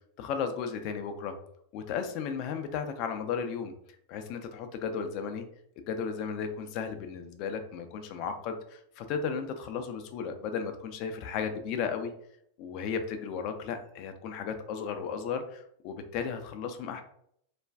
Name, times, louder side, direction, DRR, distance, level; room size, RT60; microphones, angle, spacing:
voice 1, 0.2-1.3 1.7-3.7 4.1-5.5 5.8-12.1 12.6-17.0, left 6 dB, 50° left, 7 dB, 0.5 m, -34 dB
2.4 x 2.2 x 3.3 m, 0.70 s
hypercardioid pair, 100°, 0 cm